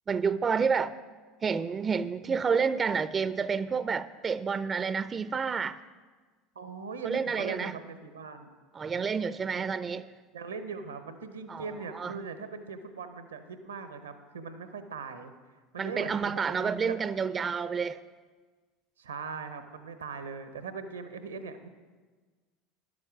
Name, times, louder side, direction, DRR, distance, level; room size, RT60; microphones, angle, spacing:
voice 1, 0.1-0.9 1.4-5.8 7.0-7.7 8.7-10.1 11.5-11.6 11.9-12.2 15.8-18.0, right 5 dB, 30° right, 15 dB, 0.4 m, -29 dB
voice 2, 6.5-8.5 10.3-15.3 15.7-16.9 19.0-21.7, right 5 dB, 85° right, 9 dB, 0.8 m, -40 dB
11.0 x 7.4 x 6.0 m, 1.4 s
hypercardioid pair, 75°, 0 cm